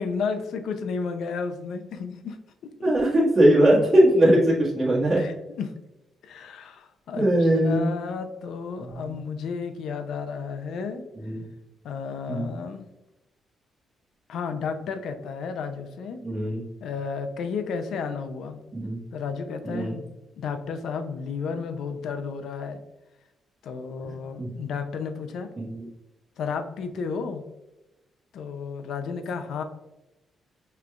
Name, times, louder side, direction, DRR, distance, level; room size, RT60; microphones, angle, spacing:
voice 1, 0.0-2.4 2.8-2.9 5.1-5.7 6.2-11.0 11.8-12.8 14.3-16.2 16.8-18.6 19.1-22.8 23.6-25.5 26.4-27.4 28.3-29.6, left 5 dB, 75° left, 7 dB, 0.5 m, -32 dB
voice 2, 2.8-5.2 7.1-7.9 9.0-9.1 11.2-11.4 12.3-12.5 16.2-16.6 18.7-19.0 19.6-19.9 24.4-24.5 25.6-25.8, right 1 dB, 30° right, -10 dB, 1.5 m, -20 dB
5.8 x 3.2 x 2.4 m, 0.97 s
cardioid pair, 110°, 0 cm